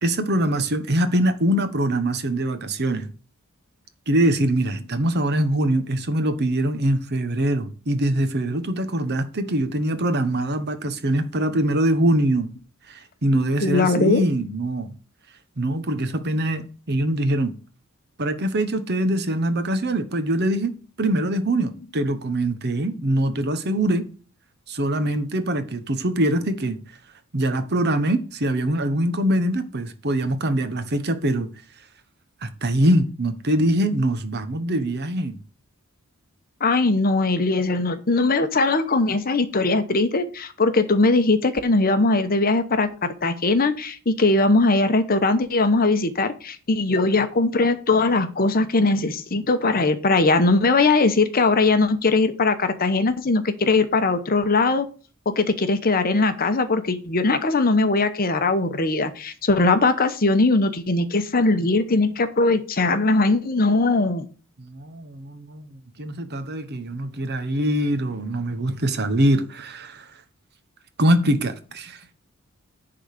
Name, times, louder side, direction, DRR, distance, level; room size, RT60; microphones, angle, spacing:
voice 1, 0.0-3.1 4.1-12.5 12.9-14.9 15.6-17.5 18.2-24.1 24.7-26.8 27.3-31.5 32.4-35.4 64.6-70.1 71.0-72.0, right 1 dB, 50° right, 1.0 m, -23 dB
voice 2, 13.6-14.2 36.6-42.9 43.2-54.8 55.3-64.3, left 3 dB, 40° left, 0.9 m, -20 dB
10.5 x 3.9 x 6.5 m
head